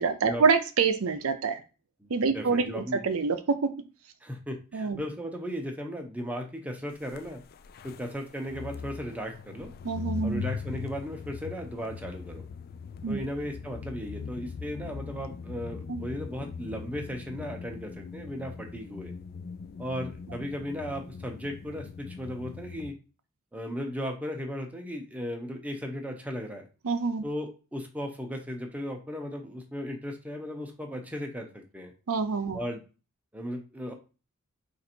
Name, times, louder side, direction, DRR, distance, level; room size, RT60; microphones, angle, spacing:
voice 1, 0.0-1.6 2.1-3.6 4.7-5.0 9.8-10.4 13.0-13.2 15.9-16.0 26.8-27.2 32.1-32.6, right 5 dB, 70° right, 8 dB, 0.5 m, -26 dB
voice 2, 2.3-3.1 4.2-7.4 7.8-9.7 10.2-12.5 13.1-19.1 19.8-23.0 23.5-26.7 27.2-31.9 32.5-32.8 33.3-33.9, equal, 5° right, 2 dB, 0.7 m, -36 dB
sound 1, 7.0-22.9, left 6 dB, 45° left, 0.3 m, -41 dB
3.9 x 2.6 x 4.3 m, 0.32 s
head